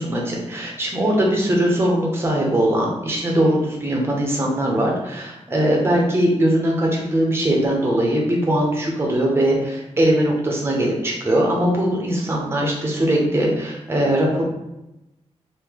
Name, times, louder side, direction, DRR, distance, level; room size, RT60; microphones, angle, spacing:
voice 1, 0.0-14.4, right 1 dB, 20° right, -1 dB, 0.8 m, -20 dB
3.2 x 2.7 x 3.6 m, 0.91 s
wide cardioid pair, 155°, 12 cm